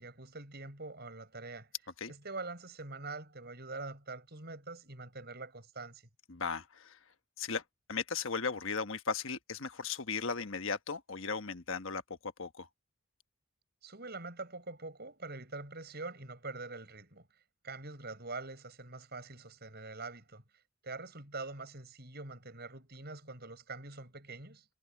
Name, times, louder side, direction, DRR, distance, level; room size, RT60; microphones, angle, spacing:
voice 1, 0.0-1.7 2.1-6.0 13.8-17.3 17.6-20.4 20.8-24.6, right 3 dB, 45° right, 6.8 m, -44 dB
voice 2, 6.3-7.0 7.4-7.6 7.9-12.7, left 5 dB, 65° left, 1.3 m, -36 dB
head